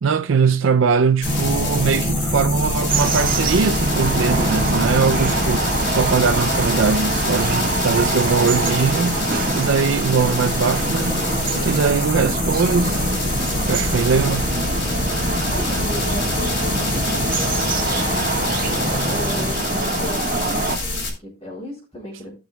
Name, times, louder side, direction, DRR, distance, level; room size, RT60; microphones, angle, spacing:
voice 1, 0.0-9.2 9.5-13.0 13.6-14.6, right 5 dB, 60° right, 0.4 m, -21 dB
sound 1, 1.2-21.1, left 2 dB, 55° left, 3.6 m, -26 dB
sound 2, 1.2-19.5, equal, 25° right, 3.3 m, -28 dB
sound 3, 2.9-20.8, right 3 dB, 40° right, 1.5 m, -25 dB
voice 2, 15.5-17.5 19.1-22.3, equal, 25° left, 3.8 m, -35 dB
17.0 x 6.2 x 2.3 m
head